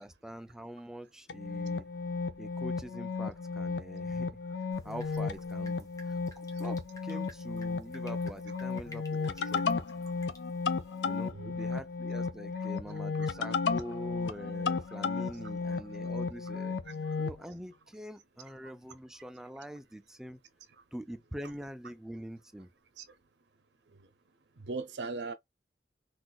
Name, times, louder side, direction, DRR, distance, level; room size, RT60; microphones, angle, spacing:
voice 1, 0.0-1.9 2.4-4.4 4.8-9.8 11.0-16.8 17.2-20.4 20.9-22.7, equal, 5° right, 0.3 m, -44 dB
sound 1, 1.3-17.4, left 4 dB, 80° left, 0.5 m, -34 dB
Drip, 4.7-11.3, left 1 dB, 20° left, 0.9 m, -56 dB
voice 2, 11.3-11.6 12.6-12.7 13.2-13.4 15.0-15.3 16.9-17.2 23.0-23.1 23.9-24.1 24.6-25.3, right 3 dB, 85° right, 0.6 m, -41 dB
3.9 x 2.5 x 2.3 m
head